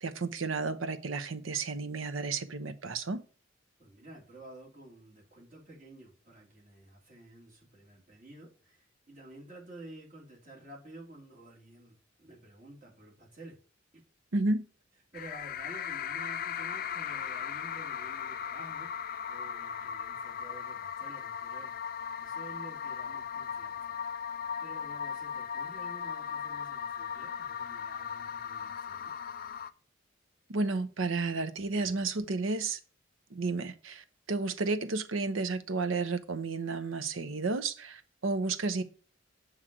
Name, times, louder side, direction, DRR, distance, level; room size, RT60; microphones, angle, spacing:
voice 1, 0.0-3.2 14.3-14.6 30.5-32.8 33.3-38.8, right 3 dB, 90° right, 0.8 m, -32 dB
voice 2, 3.8-13.6 13.9-14.0 15.1-21.7 22.2-24.0 24.6-29.1, right 2 dB, 40° right, 2.8 m, -51 dB
sound 1, 15.1-29.7, left 8 dB, 50° left, 0.4 m, -38 dB
7.4 x 3.2 x 4.9 m
head